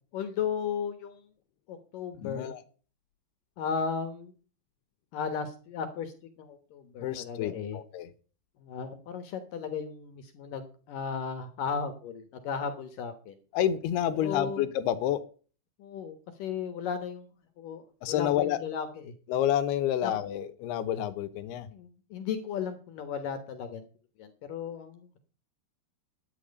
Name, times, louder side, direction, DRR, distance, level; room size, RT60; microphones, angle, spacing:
voice 1, 0.1-1.2 1.7-2.5 3.6-4.3 5.1-7.8 8.6-13.3 14.2-14.7 15.8-17.3 17.6-19.1 20.0-20.1 21.7-23.9 24.2-25.2, left 6 dB, 65° left, 9 dB, 2.6 m, -35 dB
voice 2, 2.2-2.6 7.0-8.1 13.5-15.2 18.0-18.6 19.3-21.7, left 11 dB, 80° left, 13 dB, 3.0 m, -29 dB
11.5 x 9.4 x 5.3 m, 0.39 s
omnidirectional pair, 4.6 m